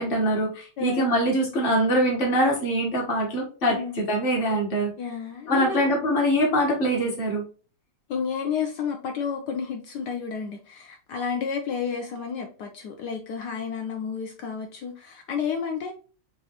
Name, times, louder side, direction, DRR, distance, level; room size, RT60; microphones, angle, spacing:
voice 1, 0.0-4.9 5.5-7.4, equal, 35° left, 0.9 m, -23 dB
voice 2, 0.8-1.1 3.7-4.2 5.0-5.9 8.1-15.9, left 6 dB, 80° left, 0.9 m, -31 dB
6.1 x 2.4 x 2.9 m
omnidirectional pair, 2.4 m